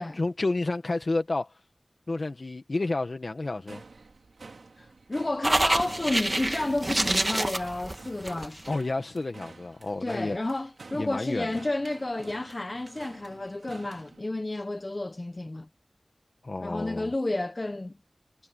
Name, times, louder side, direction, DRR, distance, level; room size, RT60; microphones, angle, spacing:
voice 1, 0.0-1.6 2.1-3.8 8.7-10.4 10.9-11.5 16.4-17.1, left 2 dB, 55° left, 1.8 m, -30 dB
sound 1, 3.4-14.3, right 3 dB, 85° right, 4.5 m, -50 dB
voice 2, 4.8-8.7 10.0-15.7 16.6-18.0, left 2 dB, 40° left, 1.1 m, -31 dB
sound 2, 5.4-8.7, right 1 dB, 30° right, 1.9 m, -27 dB
wide cardioid pair, 60°, 0 cm